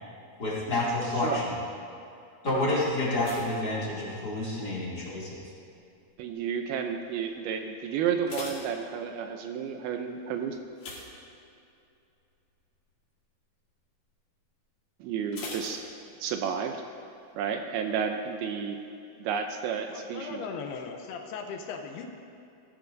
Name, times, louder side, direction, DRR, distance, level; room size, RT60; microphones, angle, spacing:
voice 1, 0.4-1.5 2.4-5.4, left 1 dB, 30° left, -7 dB, 2.6 m, -29 dB
sound 1, 3.2-4.7 4.9-5.4 6.0-6.4 6.7-6.8 7.2-7.3 7.9-9.5 10.7-11.9 12.2-12.5 12.9-13.0 15.3-16.5 16.8-16.9, left 3 dB, 50° left, 2.8 m, -42 dB
voice 2, 6.2-10.6 15.0-15.8 16.2-16.8 17.4-18.8 19.2-20.4, right 7 dB, 80° right, 5 dB, 2.4 m, -31 dB
voice 3, 19.9-22.1, left 5 dB, 80° left, 4 dB, 2.8 m, -38 dB
18.5 x 13.5 x 2.7 m, 2.6 s
omnidirectional pair, 4.7 m